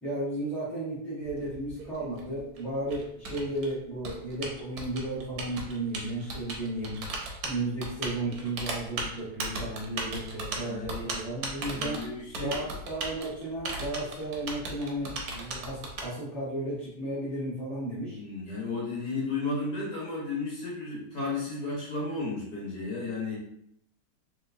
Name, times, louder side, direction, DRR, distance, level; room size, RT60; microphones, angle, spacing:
voice 1, 0.0-7.0 7.4-12.0 12.4-18.2, right 1 dB, ahead, -9 dB, 1.1 m, -34 dB
Typing, 1.2-16.0, right 2 dB, 70° right, 1.1 m, -37 dB
voice 2, 10.5-11.1 11.7-12.7 18.1-23.4, left 3 dB, 60° left, -6 dB, 1.6 m, -33 dB
3.3 x 2.9 x 2.7 m, 0.72 s
omnidirectional pair, 1.9 m